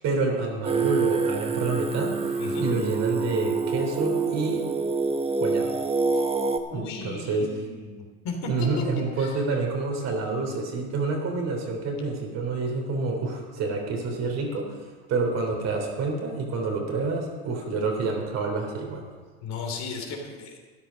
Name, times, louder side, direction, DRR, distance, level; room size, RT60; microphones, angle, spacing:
voice 1, 0.0-4.6 5.4-5.7 6.7-7.5 8.4-19.1, right 3 dB, 50° right, 2 dB, 3.5 m, -28 dB
Singing, 0.6-6.6, right 4 dB, 15° right, 1.0 m, -26 dB
voice 2, 6.7-8.8 9.2-9.4 19.4-20.6, left 4 dB, 55° left, 2 dB, 3.3 m, -35 dB
13.0 x 10.5 x 5.3 m, 1.4 s
supercardioid pair, 100°, 34 cm